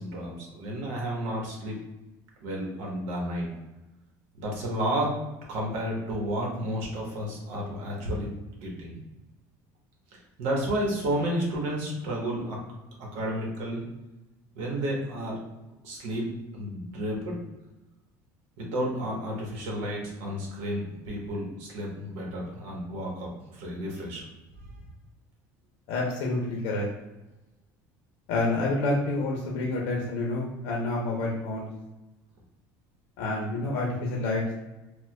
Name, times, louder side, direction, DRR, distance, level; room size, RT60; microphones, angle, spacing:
voice 1, 0.0-1.8 2.4-3.5 4.4-5.1 5.5-8.3 8.6-9.0 10.1-12.6 13.1-13.9 14.5-15.4 15.8-16.3 16.5-17.4 18.6-24.2, equal, 90° right, -1 dB, 1.0 m, -31 dB
voice 2, 25.9-26.9 28.3-31.7 33.2-34.5, left 2 dB, 80° left, -2 dB, 0.7 m, -28 dB
4.3 x 2.2 x 2.2 m, 1.0 s
cardioid pair, 145°, 8 cm